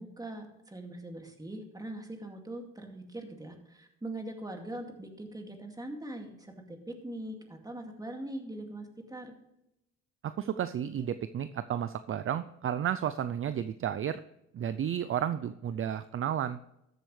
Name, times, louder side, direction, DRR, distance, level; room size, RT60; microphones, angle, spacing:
voice 1, 0.0-9.3, right 1 dB, 10° right, 3 dB, 2.3 m, -42 dB
voice 2, 10.2-14.2 14.5-16.6, right 9 dB, 45° right, 12 dB, 0.5 m, -32 dB
13.5 x 8.0 x 3.3 m, 0.85 s
cardioid pair, 90°, 30 cm